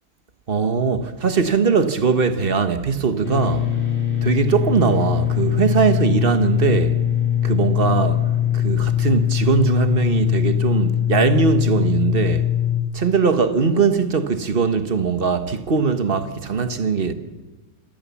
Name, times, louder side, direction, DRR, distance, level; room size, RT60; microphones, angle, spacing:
voice 1, 0.5-3.7 4.2-7.0 7.4-8.2 8.5-12.5 12.9-17.1, right 5 dB, 40° right, 1.4 m, -20 dB
sound 1, 3.2-12.8, left 10 dB, 40° left, 2.2 m, -21 dB
27.5 x 14.5 x 7.2 m
omnidirectional pair, 1.5 m